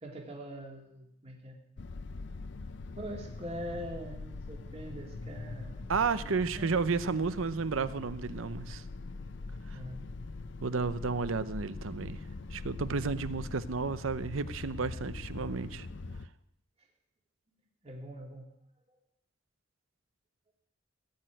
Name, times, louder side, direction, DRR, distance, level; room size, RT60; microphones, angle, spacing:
voice 1, 0.0-1.6 3.0-6.7 9.7-10.0 16.8-16.9 17.8-18.5, equal, 30° right, 0 dB, 2.2 m, -43 dB
sound 1, 1.8-16.3, left 3 dB, 60° left, 0.5 m, -42 dB
voice 2, 5.9-8.8 9.7-9.8 10.6-12.2 12.5-15.9, right 4 dB, 75° right, 14 dB, 0.7 m, -32 dB
16.5 x 6.5 x 9.1 m, 0.79 s
head